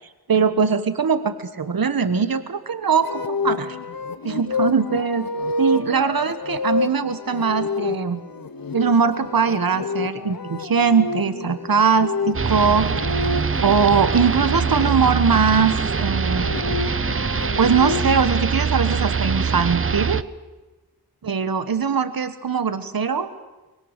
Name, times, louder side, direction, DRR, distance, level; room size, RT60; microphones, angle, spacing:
voice 1, 0.3-3.8 4.2-5.2 5.6-8.2 8.7-13.3 13.6-16.5 17.6-20.2 21.2-23.3, right 6 dB, 60° right, 11 dB, 1.2 m, -21 dB
sound 1, 3.0-14.9 16.1-18.3, left 3 dB, 60° left, 1.1 m, -29 dB
sound 2, 12.3-20.2, right 5 dB, 35° right, 0.7 m, -23 dB
24.5 x 21.0 x 6.7 m, 1.1 s
wide cardioid pair, 80°, 39 cm